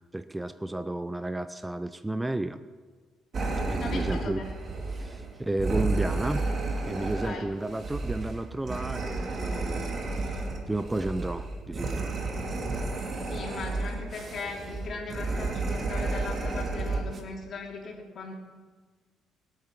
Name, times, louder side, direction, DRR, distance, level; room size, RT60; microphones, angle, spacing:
voice 1, 0.0-2.6 3.7-4.4 5.0-6.5 6.8-12.1, right 2 dB, 10° right, 11 dB, 0.5 m, -32 dB
sound 1, 3.3-17.2, right 3 dB, 40° right, 2.2 m, -32 dB
voice 2, 3.7-4.5 7.0-7.5 13.3-18.3, left 4 dB, 50° left, -1 dB, 3.3 m, -38 dB
20.5 x 9.0 x 6.0 m, 1.5 s
cardioid pair, 120°, 0 cm